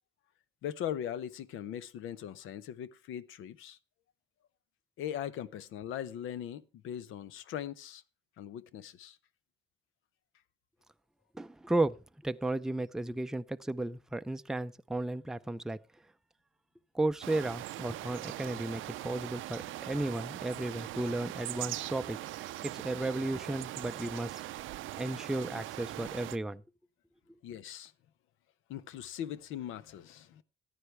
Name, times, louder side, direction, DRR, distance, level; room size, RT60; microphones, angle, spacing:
voice 1, 0.6-3.8 5.0-8.0 8.4-9.2 27.4-27.9 28.7-30.4, left 10 dB, 85° left, 0.8 m, -40 dB
voice 2, 11.3-11.9 12.2-15.8 16.9-24.4 25.0-26.6, right 2 dB, 5° right, 0.4 m, -34 dB
sound 1, 17.2-26.4, right 15 dB, 80° right, 0.5 m, -41 dB
14.5 x 9.6 x 3.3 m
cardioid pair, 90°, 20 cm